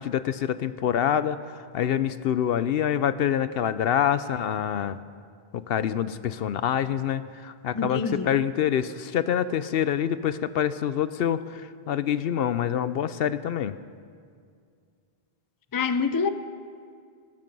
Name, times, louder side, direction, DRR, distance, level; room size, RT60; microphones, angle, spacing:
voice 1, 0.0-5.0 5.5-13.7, left 9 dB, 70° left, 14 dB, 0.8 m, -26 dB
voice 2, 7.7-8.3 15.7-16.3, left 5 dB, 25° left, 10 dB, 0.5 m, -26 dB
20.0 x 13.0 x 5.4 m, 2.2 s
omnidirectional pair, 1.1 m